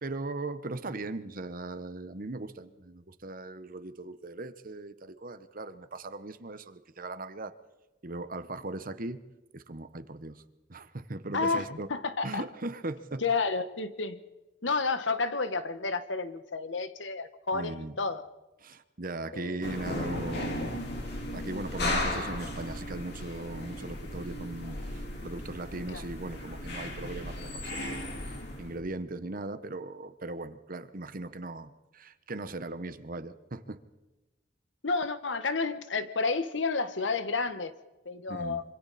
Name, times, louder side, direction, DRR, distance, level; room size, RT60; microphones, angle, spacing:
voice 1, 0.0-7.5 8.0-9.2 9.5-10.4 10.7-11.9 12.2-13.2 17.5-17.9 18.6-21.0 21.3-33.8 38.3-38.6, right 2 dB, 50° right, 12 dB, 1.1 m, -39 dB
voice 2, 11.3-12.4 13.2-14.2 14.6-18.3 19.3-19.6 20.1-20.3 20.6-20.7 25.9-26.0 34.8-37.7 38.0-38.6, left 4 dB, 75° left, 11 dB, 1.4 m, -31 dB
sound 1, 19.6-28.8, left 1 dB, 60° left, 4.1 m, -36 dB
26.0 x 25.0 x 4.3 m, 1.1 s
head